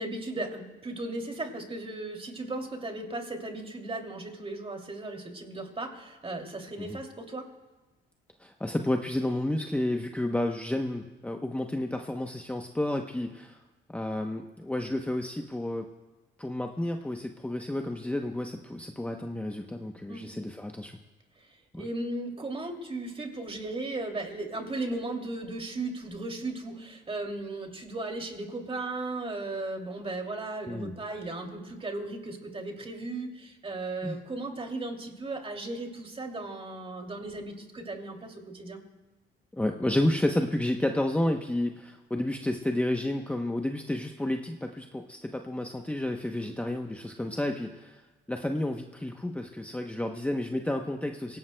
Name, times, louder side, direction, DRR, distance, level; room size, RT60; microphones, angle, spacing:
voice 1, 0.0-7.5 20.1-20.3 21.4-38.8 46.4-46.6, right 2 dB, 30° right, 3 dB, 2.7 m, -36 dB
voice 2, 8.4-13.6 13.9-15.9 16.4-21.0 21.7-21.8 30.7-30.9 34.0-34.2 39.5-48.0 48.3-51.4, left 1 dB, 5° left, 3 dB, 0.8 m, -31 dB
27.5 x 17.5 x 2.3 m, 1.2 s
cardioid pair, 90°, 20 cm